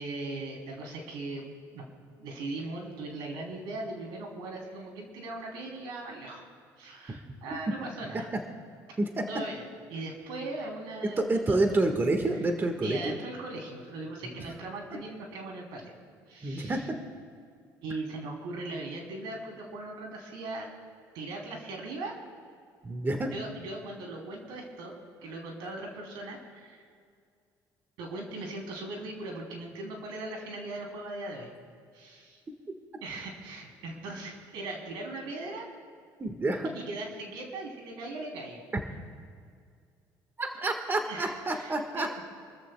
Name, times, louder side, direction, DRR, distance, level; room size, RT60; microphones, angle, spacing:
voice 1, 0.0-1.4 1.7-1.8 2.1-6.4 6.8-8.3 8.9-9.0 9.3-9.6 9.9-11.8 12.8-15.9 16.3-16.9 17.8-20.7 21.1-22.2 23.3-24.9 25.2-26.8 28.0-31.5 31.9-32.4 33.0-35.7 36.7-38.6 41.0-42.2, right 2 dB, 80° right, 0 dB, 3.3 m, -39 dB
voice 2, 11.2-13.2 14.2-14.4 16.4-16.8 22.8-23.3 36.2-36.7 40.4-42.2, right 2 dB, 25° right, 4 dB, 1.5 m, -28 dB
27.0 x 14.0 x 2.3 m, 2.2 s
supercardioid pair, 80°, 8 cm